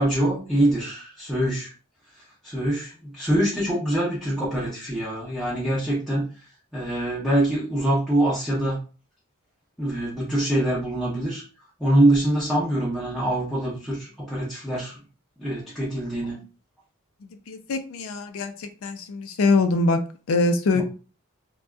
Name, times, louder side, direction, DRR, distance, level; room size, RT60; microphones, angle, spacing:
voice 1, 0.0-1.7 2.1-6.3 6.7-8.8 9.8-11.4 11.8-15.0 15.4-16.4 20.7-20.8, right 1 dB, ahead, 0.8 m, -24 dB
voice 2, 17.5-20.0 20.3-20.8, left 3 dB, 70° left, 0.4 m, -23 dB
2.7 x 2.2 x 2.3 m
head